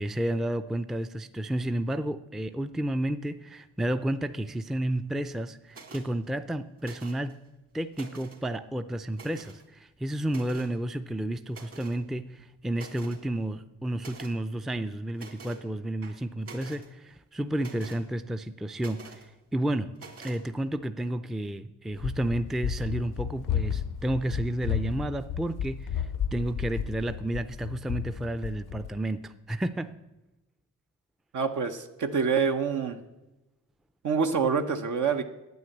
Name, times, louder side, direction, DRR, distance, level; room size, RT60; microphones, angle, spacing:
voice 1, 0.0-7.4 7.7-19.9 20.2-29.9, right 1 dB, ahead, 10 dB, 0.4 m, -31 dB
sound 1, 5.7-6.1 6.8-7.3 7.8-8.4 9.1-9.6 10.3-10.7 11.5-12.0 12.4-12.5 12.7-13.2 14.0-14.4 15.1-15.6 16.0-16.9 17.6-18.0 18.8-19.3 20.0-20.4, right 4 dB, 45° right, 2.4 m, -47 dB
Run, 21.9-29.0, left 8 dB, 75° left, 0.6 m, -33 dB
voice 2, 31.3-33.0 34.0-35.2, right 5 dB, 70° right, 5 dB, 0.9 m, -26 dB
9.4 x 9.1 x 7.9 m, 1.0 s
cardioid pair, 85°, 32 cm